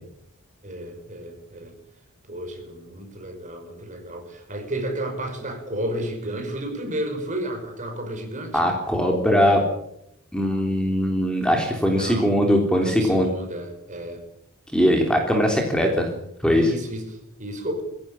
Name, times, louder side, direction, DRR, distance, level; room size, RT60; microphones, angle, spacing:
voice 1, 0.6-1.7 2.3-8.7 11.9-12.3 12.8-14.2 16.5-17.8, right 1 dB, 35° right, 5 dB, 5.8 m, -32 dB
voice 2, 8.5-9.6 10.3-13.3 14.7-16.1 16.4-16.7, equal, 5° left, 2 dB, 3.5 m, -20 dB
23.0 x 17.0 x 8.9 m, 0.76 s
head